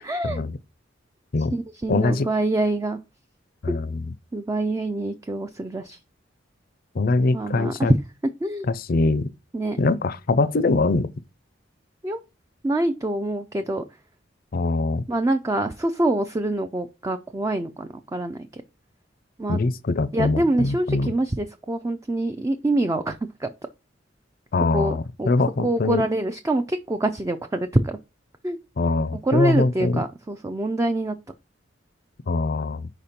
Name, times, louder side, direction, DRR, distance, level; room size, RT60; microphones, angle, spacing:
voice 1, 0.0-0.4 1.5-3.0 4.3-6.0 7.3-8.0 8.4-8.7 9.5-9.8 12.0-12.2 12.6-13.8 15.1-18.6 19.4-19.6 20.1-23.5 24.7-25.3 25.6-28.0 28.4-28.6 29.2-31.2, right 1 dB, 15° right, 0.4 m, -25 dB
voice 2, 1.9-2.3 3.6-4.0 6.9-7.9 8.7-9.3 9.8-11.1 14.5-15.0 19.5-21.1 24.5-26.0 28.8-30.0 32.3-32.9, left 3 dB, 50° left, 0.5 m, -23 dB
4.9 x 4.3 x 5.1 m
head